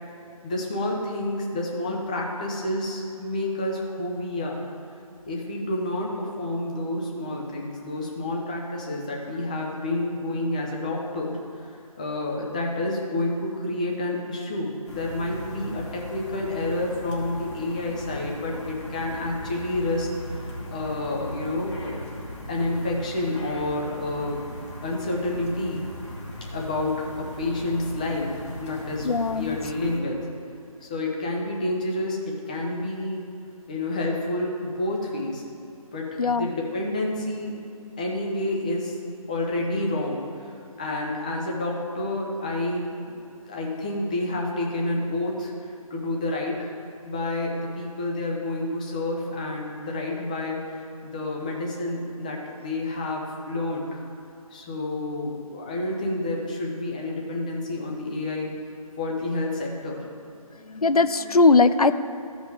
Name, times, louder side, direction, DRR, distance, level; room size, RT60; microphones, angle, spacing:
voice 1, 0.4-4.6 5.3-11.4 11.7-22.1 22.5-24.4 24.8-25.9 26.5-28.3 28.6-30.3 30.8-33.3 33.7-35.4 35.9-37.6 38.0-39.0 39.3-43.1 43.4-46.7 47.0-54.0 54.5-58.5 59.0-60.0, left 2 dB, 10° left, -1 dB, 0.6 m, -29 dB
sound 1, 14.9-30.0, left 1 dB, 50° left, 2.6 m, -38 dB
voice 2, 29.0-29.6 36.2-36.5 60.7-61.9, left 3 dB, 80° left, 12 dB, 0.5 m, -19 dB
14.0 x 5.2 x 4.9 m, 2.8 s
figure-of-eight pair, 155°, 19 cm